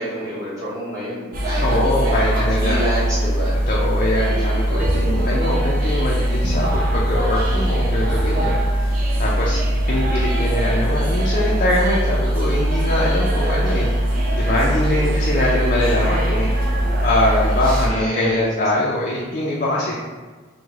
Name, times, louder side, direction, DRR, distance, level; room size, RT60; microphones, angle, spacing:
voice 1, 0.0-3.5 17.9-18.5, equal, 15° right, -10 dB, 1.1 m, -28 dB
sound 1, 1.3-17.9, right 1 dB, 45° right, 0.5 m, -20 dB
voice 2, 1.6-2.8 3.7-8.6 9.2-9.6 9.9-16.5 17.0-20.0, left 1 dB, 40° left, -5 dB, 0.4 m, -22 dB
3.2 x 2.1 x 3.5 m, 1.4 s
head